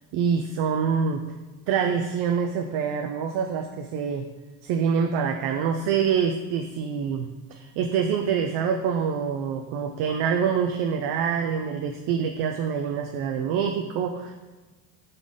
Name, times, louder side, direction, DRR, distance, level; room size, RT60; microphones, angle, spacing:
voice 1, 0.1-1.2 1.7-4.3 4.6-14.3, right 7 dB, 60° right, 4 dB, 0.5 m, -26 dB
3.8 x 3.3 x 3.6 m, 1.3 s
supercardioid pair, 85°, 45 cm